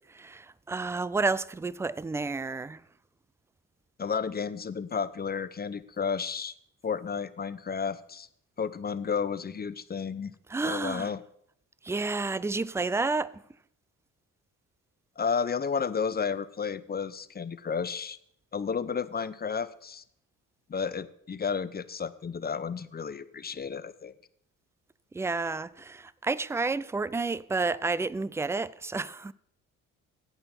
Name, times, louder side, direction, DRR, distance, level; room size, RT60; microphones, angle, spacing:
voice 1, 0.1-2.8 10.5-11.1 11.8-13.4 25.1-29.3, right 3 dB, 10° right, 0.3 m, -30 dB
voice 2, 4.0-6.5 6.8-8.3 8.6-10.3 10.6-11.2 15.2-18.2 18.5-20.0 20.7-24.1, left 6 dB, 25° left, 0.7 m, -32 dB
16.5 x 5.7 x 4.3 m
hypercardioid pair, 55°, 37 cm